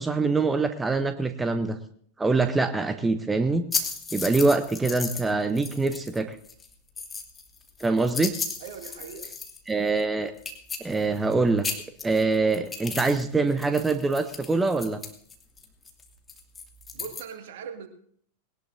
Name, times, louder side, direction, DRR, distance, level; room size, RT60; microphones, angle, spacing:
voice 1, 0.0-1.8 2.2-3.6 4.1-6.4 7.8-8.3 9.7-10.3 10.8-11.7 12.0-15.0, right 3 dB, 10° right, 9 dB, 0.8 m, -24 dB
sound 1, 3.7-5.3 5.6-6.2 6.4-9.7 10.0-10.1 10.4-11.3 11.6-13.2 13.5-17.2, left 5 dB, 15° left, 2.4 m, -34 dB
voice 2, 8.6-9.3 16.9-17.9, right 6 dB, 55° right, 6 dB, 2.0 m, -40 dB
20.5 x 18.5 x 2.7 m, 0.62 s
figure-of-eight pair, 90°, 0 cm